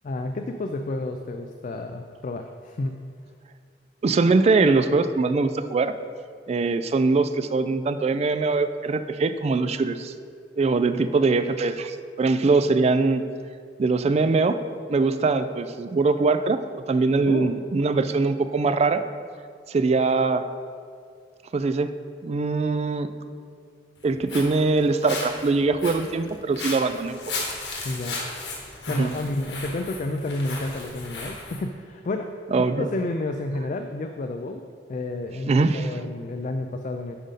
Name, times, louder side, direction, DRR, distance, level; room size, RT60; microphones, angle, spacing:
voice 1, 0.0-2.9 17.2-17.5 27.8-28.2 28.9-32.3 32.8-34.6 34.9-37.1, left 2 dB, 45° left, 6 dB, 0.4 m, -30 dB
voice 2, 4.0-5.9 6.5-10.1 10.6-13.2 13.8-14.6 14.9-16.6 16.9-19.0 19.7-20.4 21.5-21.9 22.2-23.1 24.0-27.2 29.0-29.1 32.5-32.9 35.5-35.9, right 3 dB, 35° right, 11 dB, 0.3 m, -22 dB
Walk footsteps, 24.0-31.6, left 3 dB, 85° left, 1.6 m, -35 dB
10.0 x 5.2 x 4.0 m, 2.2 s
head